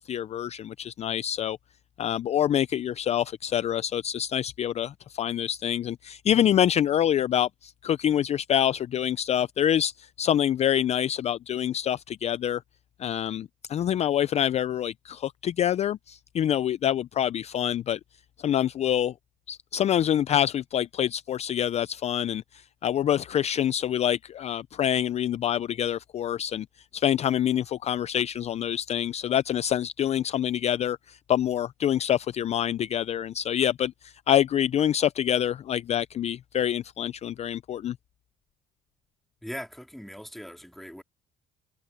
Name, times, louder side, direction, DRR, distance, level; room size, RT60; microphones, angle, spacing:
voice 1, 0.0-1.6 2.0-12.6 13.0-18.0 18.4-19.1 19.5-26.7 26.9-38.0, left 10 dB, 40° left, 0.4 m, -26 dB
voice 2, 39.4-41.0, equal, ahead, 3.1 m, -40 dB
cardioid pair, 110°, 17 cm